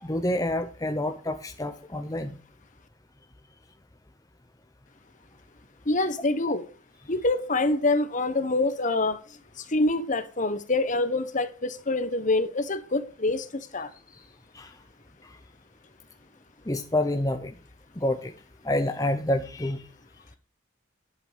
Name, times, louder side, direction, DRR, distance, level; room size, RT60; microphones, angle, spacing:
voice 1, 0.0-2.4 14.5-14.7 16.7-17.5 18.0-18.3 18.6-19.8, left 1 dB, 15° left, 0.8 m, -28 dB
voice 2, 5.9-6.6 7.1-9.2 9.7-13.4 13.7-13.9, left 2 dB, 40° left, 1.1 m, -25 dB
11.0 x 8.0 x 5.1 m
head